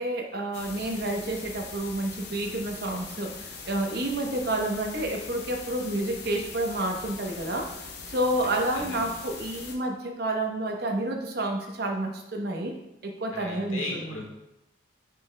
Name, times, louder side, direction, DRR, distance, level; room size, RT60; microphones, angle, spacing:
voice 1, 0.0-7.7 8.1-12.7 13.0-14.2, right 1 dB, 55° right, 2 dB, 0.9 m, -29 dB
sound 1, 0.5-9.7, left 4 dB, 55° left, 0.8 m, -41 dB
voice 2, 8.7-9.1 13.3-14.2, left 2 dB, 90° left, -1 dB, 1.6 m, -36 dB
8.9 x 4.9 x 2.2 m, 0.89 s
head